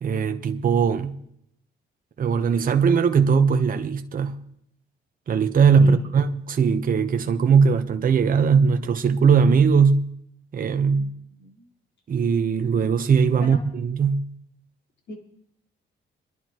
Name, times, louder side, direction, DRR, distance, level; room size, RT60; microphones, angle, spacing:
voice 1, 0.0-1.2 2.2-4.4 5.3-10.1 10.5-11.1 12.1-14.3, right 6 dB, 45° right, 1.0 m, -20 dB
voice 2, 10.9-11.7 13.4-13.6 15.1-15.2, left 1 dB, 60° left, 4.2 m, -37 dB
26.0 x 11.0 x 3.0 m
cardioid pair, 90°, 20 cm